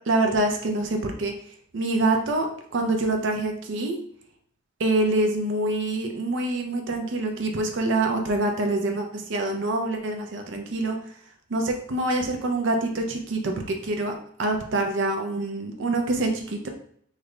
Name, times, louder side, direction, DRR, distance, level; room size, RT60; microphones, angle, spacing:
voice 1, 0.1-4.0 4.8-11.1 11.5-14.1 14.4-16.7, right 2 dB, 60° right, 3 dB, 0.5 m, -26 dB
3.3 x 2.1 x 3.7 m, 0.63 s
head